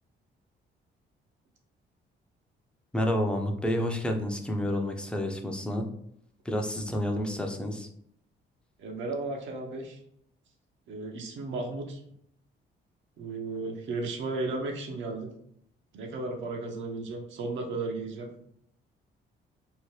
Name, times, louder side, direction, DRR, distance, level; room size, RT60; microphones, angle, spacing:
voice 1, 2.9-5.9 6.5-7.9, equal, 5° left, 3 dB, 0.4 m, -29 dB
voice 2, 8.8-10.0 10.9-12.0 13.2-15.3 15.9-18.4, right 3 dB, 70° right, 1 dB, 0.6 m, -34 dB
2.7 x 2.1 x 3.1 m, 0.70 s
cardioid pair, 90°, 20 cm